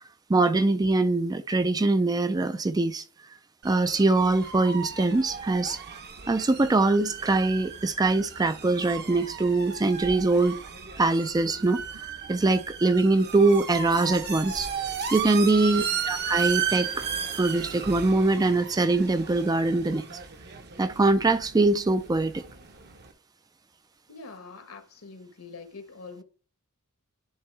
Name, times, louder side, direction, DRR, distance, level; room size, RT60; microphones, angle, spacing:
voice 1, 0.3-3.0 3.6-5.8 6.3-10.6 11.0-11.8 12.3-14.7 15.1-16.9 17.4-20.2 20.8-22.4, right 2 dB, 15° right, 0.4 m, -23 dB
sound 1, 3.6-23.1, right 7 dB, 50° right, 0.9 m, -35 dB
voice 2, 15.5-16.0 24.1-26.2, left 4 dB, 70° left, 1.3 m, -44 dB
10.5 x 3.6 x 3.3 m
head